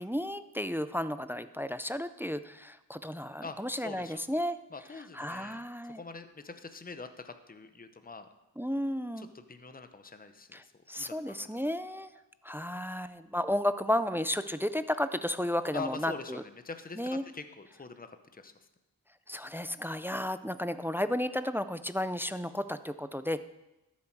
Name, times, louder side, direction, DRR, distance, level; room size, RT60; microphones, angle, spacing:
voice 1, 0.0-4.6 5.1-6.0 8.6-9.3 10.5-10.6 10.9-12.1 12.4-16.4 17.0-17.2 19.3-23.4, left 1 dB, 5° right, 12 dB, 0.4 m, -33 dB
voice 2, 3.4-4.4 4.7-8.3 9.2-10.7 11.0-11.5 15.7-18.5, left 4 dB, 20° left, 9 dB, 0.8 m, -44 dB
13.0 x 7.4 x 4.6 m, 0.97 s
wide cardioid pair, 60°, 39 cm